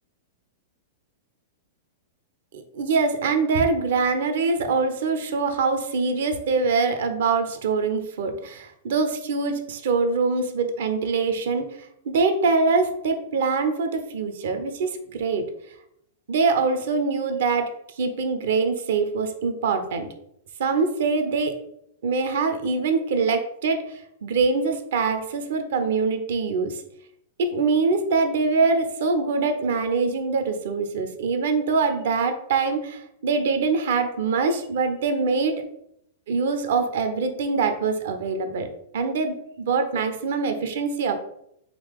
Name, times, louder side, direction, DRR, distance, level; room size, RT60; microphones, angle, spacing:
voice 1, 2.5-11.7 12.1-15.4 16.3-17.7 18.0-20.1 20.6-21.5 22.0-23.8 24.2-26.8 27.4-35.6 36.3-38.7 38.9-41.1, right 4 dB, 60° right, 7 dB, 0.6 m, -24 dB
3.7 x 2.8 x 3.6 m, 0.74 s
figure-of-eight pair, 100°, 0 cm